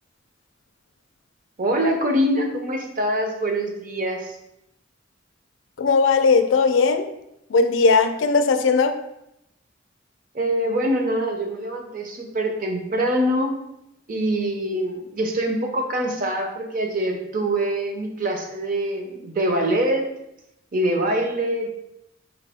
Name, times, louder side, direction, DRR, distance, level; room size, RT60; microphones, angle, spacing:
voice 1, 1.6-4.3 10.3-13.6 14.1-20.0 20.7-21.7, right 1 dB, 45° right, 2 dB, 0.6 m, -24 dB
voice 2, 5.8-7.0 7.5-8.9, left 4 dB, 90° left, 8 dB, 0.4 m, -18 dB
3.9 x 2.8 x 3.4 m, 0.83 s
head